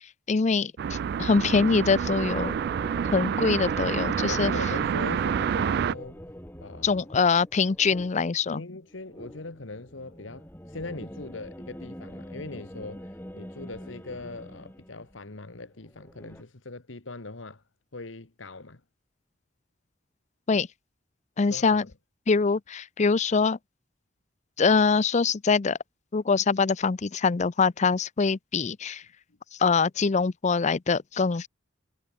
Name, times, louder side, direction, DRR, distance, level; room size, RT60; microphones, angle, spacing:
voice 1, 0.3-2.6 3.1-4.5 6.8-8.6 20.5-20.7 21.4-21.8 22.3-23.6 24.6-25.8 26.1-29.0 29.6-31.5, left 4 dB, 40° left, 0.5 m, -24 dB
sound 1, 0.8-5.9, right 7 dB, 55° right, 0.3 m, -28 dB
sound 2, 1.5-15.4 15.7-16.4, equal, 10° left, 7.4 m, -44 dB
voice 2, 4.3-6.2 6.6-7.1 8.5-17.6 17.9-18.8 21.5-21.9, left 3 dB, 85° left, 1.6 m, -41 dB
head